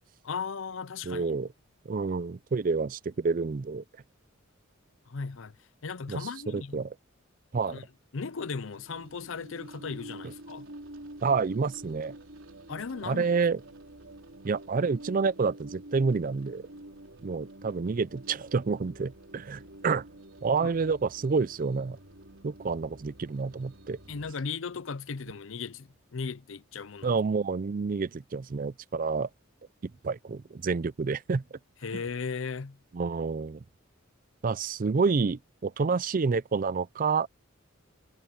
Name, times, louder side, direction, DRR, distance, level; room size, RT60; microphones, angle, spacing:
voice 1, 0.2-1.4 5.1-5.6 5.8-6.8 7.7-7.8 8.1-10.7 12.7-13.3 20.6-20.7 24.1-27.2 31.8-32.8, left 5 dB, 65° left, 0.6 m, -36 dB
voice 2, 1.1-1.5 1.9-3.8 6.1-6.2 6.5-6.9 7.5-7.8 11.2-12.1 13.1-13.6 14.4-16.6 17.2-20.0 20.4-22.0 22.4-24.0 27.0-29.3 29.8-31.4 31.9-32.0 32.9-33.6 34.4-37.3, right 4 dB, 40° right, 0.4 m, -28 dB
sound 1, 8.3-24.3, right 1 dB, 65° right, 4.1 m, -48 dB
head